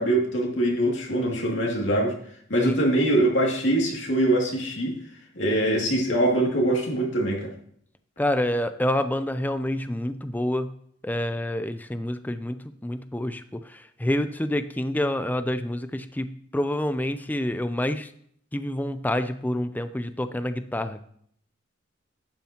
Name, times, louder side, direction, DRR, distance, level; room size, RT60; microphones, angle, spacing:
voice 1, 0.0-2.2 2.5-5.0 5.4-7.5, right 1 dB, 65° left, -1 dB, 2.5 m, -23 dB
voice 2, 8.2-10.8 11.0-18.1 18.5-21.0, left 1 dB, 10° left, 10 dB, 0.5 m, -28 dB
11.5 x 9.1 x 3.0 m, 0.65 s
head